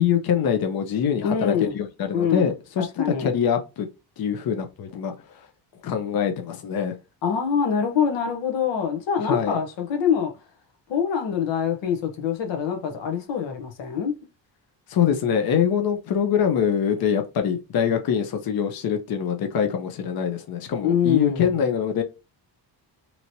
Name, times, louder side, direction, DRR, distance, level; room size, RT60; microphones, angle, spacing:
voice 1, 0.0-3.9 4.2-5.1 5.8-7.0 9.3-9.6 14.9-22.0, left 8 dB, 55° left, 0.7 m, -24 dB
voice 2, 1.2-1.8 2.1-3.3 7.2-10.3 10.9-14.2 20.8-21.5, left 7 dB, 90° left, 0.9 m, -25 dB
3.0 x 2.9 x 2.6 m
cardioid pair, 125°, 43 cm